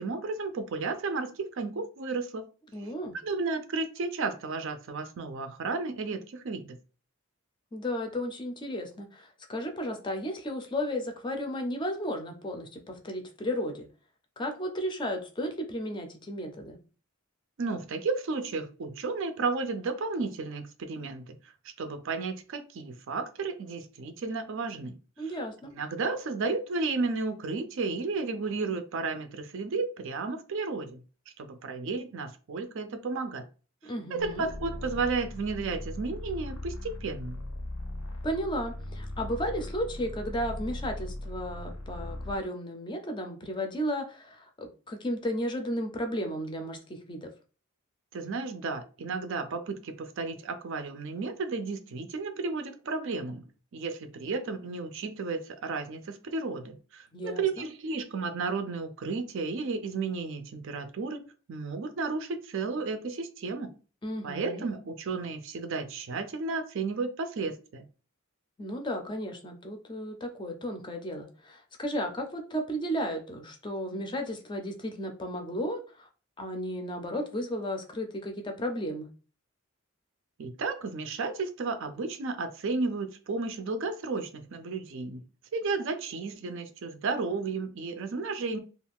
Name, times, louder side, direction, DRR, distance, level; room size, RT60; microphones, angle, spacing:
voice 1, 0.0-2.4 3.2-6.8 17.6-21.4 21.6-25.0 25.7-31.0 31.4-33.5 34.1-37.4 48.1-53.4 53.7-63.7 64.2-67.9 80.4-85.2 85.5-88.6, right 4 dB, 60° right, 0.4 m, -33 dB
voice 2, 2.7-3.2 7.7-13.9 14.4-16.8 25.2-25.7 33.8-34.5 38.2-47.3 57.1-57.7 64.0-64.6 68.6-76.1 76.4-79.1, equal, 20° left, 0.5 m, -34 dB
sound 1, 34.2-42.4, left 1 dB, 80° left, 0.6 m, -39 dB
2.4 x 2.3 x 3.4 m
head